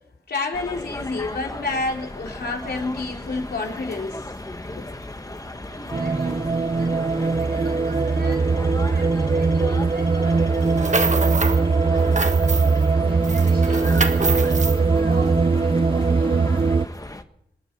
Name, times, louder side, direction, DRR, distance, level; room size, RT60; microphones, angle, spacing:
voice 1, 0.3-4.2 4.6-5.1, left 3 dB, 90° left, 0 dB, 3.7 m, -29 dB
sound 1, 0.5-17.2, left 2 dB, 20° left, 1.4 m, -36 dB
voice 2, 5.7-8.5 8.9-12.4 12.8-16.8, right 1 dB, 75° right, 1 dB, 6.4 m, -40 dB
sound 2, 5.9-16.9, right 4 dB, 30° right, 0.7 m, -20 dB
sound 3, 10.6-11.6 11.9-12.9 13.2-14.8, right 3 dB, 50° right, 1.5 m, -26 dB
26.0 x 9.1 x 6.1 m, 0.78 s
cardioid pair, 50°, 16 cm